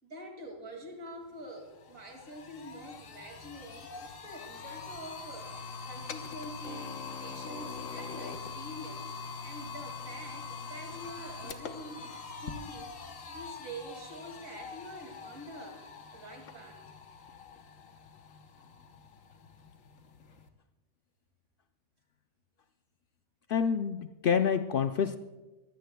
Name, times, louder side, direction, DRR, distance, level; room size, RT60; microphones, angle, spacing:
voice 1, 0.0-6.9 7.2-9.1 9.4-12.9 13.3-15.8 16.1-16.8, right 1 dB, 65° right, 2 dB, 2.8 m, -46 dB
sound 1, 1.1-1.2 1.5-20.5, left 4 dB, 65° left, 1.3 m, -44 dB
voice 2, 23.5-25.2, left 7 dB, 85° left, 8 dB, 0.4 m, -27 dB
23.0 x 16.0 x 2.3 m, 1.1 s
omnidirectional pair, 1.6 m